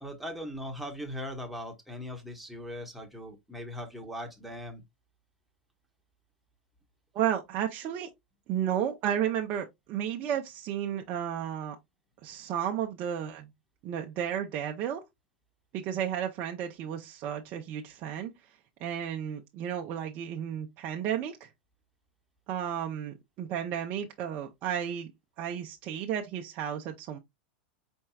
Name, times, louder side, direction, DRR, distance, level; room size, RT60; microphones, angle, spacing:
voice 1, 0.0-4.8, equal, ahead, 1.2 m, -39 dB
voice 2, 7.1-8.1 8.5-11.8 12.2-13.5 13.8-15.0 15.7-18.3 18.8-21.5 22.5-25.1 25.4-27.2, right 9 dB, 45° right, 0.7 m, -33 dB
4.4 x 4.4 x 2.3 m
supercardioid pair, 125°, 5 cm